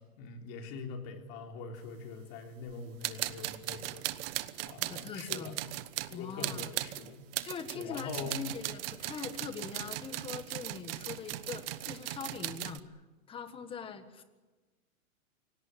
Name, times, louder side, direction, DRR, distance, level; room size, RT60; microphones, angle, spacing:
voice 1, 0.0-4.1 4.6-5.8 6.1-7.2 7.7-8.4, left 4 dB, 35° left, 4 dB, 3.6 m, -43 dB
sound 1, 2.7-2.8 3.0-12.8, right 15 dB, 40° right, 1.1 m, -38 dB
voice 2, 4.8-5.6 6.1-6.7 7.4-12.8 13.3-14.2, left 6 dB, 10° left, 10 dB, 1.5 m, -42 dB
26.0 x 18.0 x 10.0 m, 1.2 s
hypercardioid pair, 150°, 42 cm